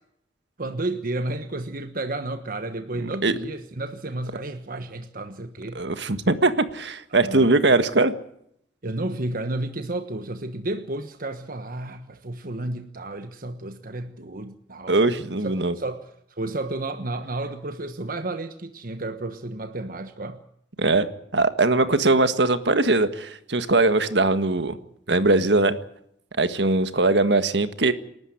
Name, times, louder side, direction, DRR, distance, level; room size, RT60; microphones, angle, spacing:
voice 1, 0.6-5.8 7.2-7.5 8.8-15.0 15.4-16.0 16.3-20.4 21.8-22.0, right 2 dB, 55° right, 1.3 m, -32 dB
voice 2, 3.0-3.4 5.7-8.1 14.9-15.8 20.8-24.8 25.1-25.8 26.4-27.9, right 2 dB, 70° right, 1.7 m, -21 dB
28.5 x 12.5 x 9.6 m
head